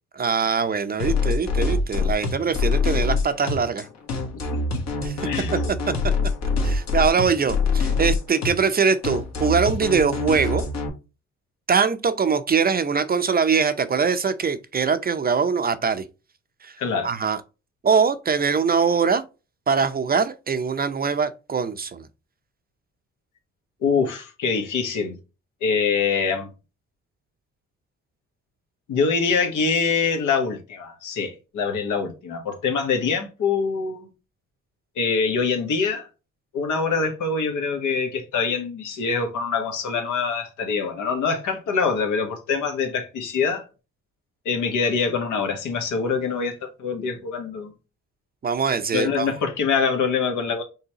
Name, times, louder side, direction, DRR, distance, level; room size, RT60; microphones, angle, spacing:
voice 1, 0.2-3.9 5.0-5.2 5.5-5.6 5.9-6.0 6.6-10.6 11.7-16.0 16.6-16.7 17.0-17.4 17.8-19.2 19.7-22.1 48.4-49.3, right 5 dB, 30° right, 0.6 m, -22 dB
sound 1, 1.0-10.9, left 4 dB, 60° left, 1.3 m, -24 dB
voice 2, 5.2-5.5 16.8-17.1 23.8-25.2 25.6-26.5 28.9-34.1 35.0-36.1 36.5-43.6 44.4-47.7 48.9-50.6, left 5 dB, 80° left, 1.4 m, -24 dB
5.5 x 3.4 x 2.9 m
cardioid pair, 90°, 30 cm